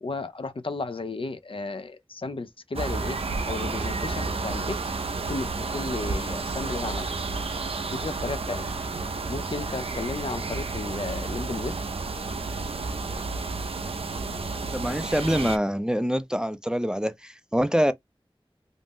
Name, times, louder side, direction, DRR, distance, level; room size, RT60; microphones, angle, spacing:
voice 1, 0.0-3.2 3.5-4.7 5.3-7.1 7.9-8.6 9.3-11.7, left 3 dB, 70° left, 0.4 m, -33 dB
sound 1, 2.7-15.6, right 3 dB, 90° right, 0.4 m, -31 dB
voice 2, 14.7-17.9, equal, 10° right, 0.4 m, -25 dB
2.5 x 2.0 x 3.4 m
wide cardioid pair, 45°, 10 cm